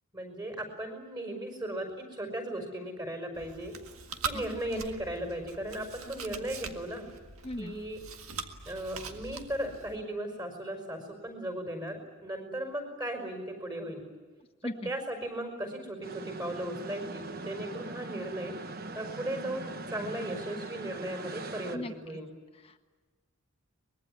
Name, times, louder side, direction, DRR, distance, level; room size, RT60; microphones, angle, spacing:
voice 1, 0.1-3.7 4.2-7.1 7.6-8.0 8.7-14.0 14.6-18.5 18.9-22.3, right 1 dB, 20° right, 5 dB, 5.2 m, -37 dB
Chewing mastication, 3.3-10.0, right 5 dB, 80° right, 1.8 m, -42 dB
voice 2, 7.4-7.8 14.6-14.9 21.7-21.9 22.5-22.8, left 1 dB, 25° left, 5 dB, 1.4 m, -38 dB
sound 1, 16.0-21.8, right 3 dB, 45° right, 1.2 m, -41 dB
24.0 x 21.5 x 9.7 m, 1.3 s
head